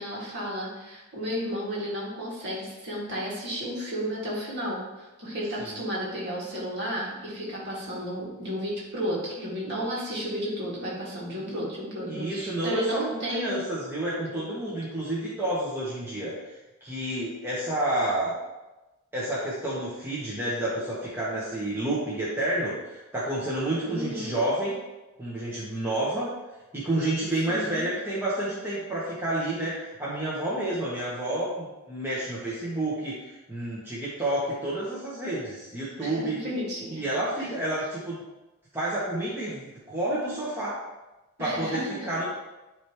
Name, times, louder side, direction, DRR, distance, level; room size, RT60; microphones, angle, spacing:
voice 1, 0.0-13.6 23.8-24.3 27.5-27.8 36.0-37.0 37.4-37.5 41.4-42.1, equal, 50° right, -6 dB, 2.1 m, -33 dB
voice 2, 12.1-18.3 19.1-24.7 25.2-26.3 26.7-36.4 36.9-38.2 38.7-40.7 41.4-42.2, right 1 dB, 10° right, -9 dB, 1.1 m, -30 dB
9.9 x 3.4 x 3.0 m, 1.0 s
head